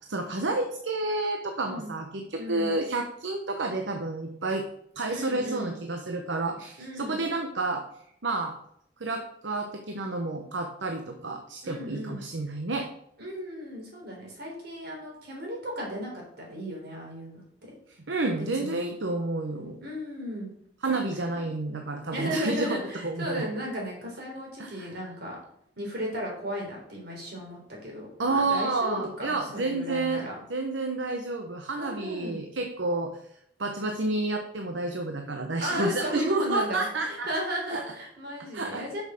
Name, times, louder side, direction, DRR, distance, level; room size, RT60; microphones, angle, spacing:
voice 1, 0.1-4.7 4.9-7.8 8.2-8.5 9.0-12.9 18.1-19.8 20.8-23.5 24.6-24.9 28.2-30.2 30.5-33.2 33.6-37.3 37.7-37.8 38.5-38.8, right 2 dB, 75° right, 4 dB, 0.9 m, -30 dB
voice 2, 2.4-2.8 5.1-5.8 6.8-7.2 11.6-12.2 13.2-17.7 18.6-18.9 19.8-20.5 20.9-21.0 21.3-21.5 22.1-25.4 25.8-30.4 31.8-32.5 35.6-39.0, equal, 60° right, -1 dB, 3.8 m, -35 dB
7.1 x 6.4 x 6.4 m, 0.72 s
head